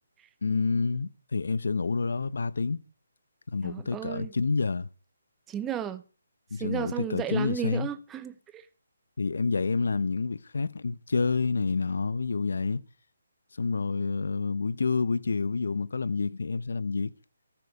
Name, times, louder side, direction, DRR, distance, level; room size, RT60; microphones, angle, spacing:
voice 1, 0.4-2.8 3.5-4.9 6.5-7.9 9.2-12.8 13.6-17.1, left 4 dB, 75° left, 0.9 m, -28 dB
voice 2, 3.6-4.3 5.5-6.0 6.6-8.6, right 9 dB, 10° right, 0.7 m, -33 dB
14.5 x 12.5 x 5.0 m
hypercardioid pair, 165°, 0 cm